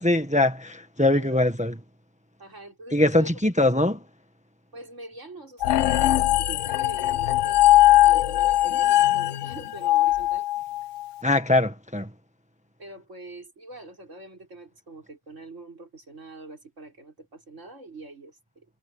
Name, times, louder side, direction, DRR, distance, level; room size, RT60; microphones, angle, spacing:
voice 1, 0.0-1.7 2.9-4.0 11.2-12.1, left 1 dB, 5° right, 1.3 m, -22 dB
voice 2, 1.1-1.4 2.4-3.4 4.7-10.4 12.8-18.7, right 2 dB, 55° right, 5.7 m, -44 dB
sound 1, 5.6-11.0, left 14 dB, 65° left, 0.9 m, -20 dB
omnidirectional pair, 1.5 m